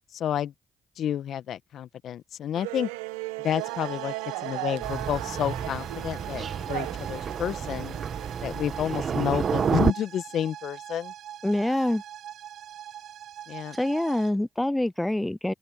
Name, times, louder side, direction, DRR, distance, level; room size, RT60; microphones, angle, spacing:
voice 1, 0.1-0.5 1.0-2.9 3.4-4.1 4.4-8.0 8.4-11.1 13.5-13.8, left 10 dB, 70° left, 1.5 m, -30 dB
sound 1, 2.5-8.3, right 21 dB, 90° right, 1.2 m, -36 dB
sound 2, 3.4-14.3, right 11 dB, 70° right, 5.6 m, -42 dB
Thunder, 4.8-9.9, right 7 dB, 55° right, 1.7 m, -30 dB
voice 2, 11.4-12.0 13.7-15.5, left 1 dB, 10° left, 0.5 m, -25 dB
open air
hypercardioid pair, 45°, 0 cm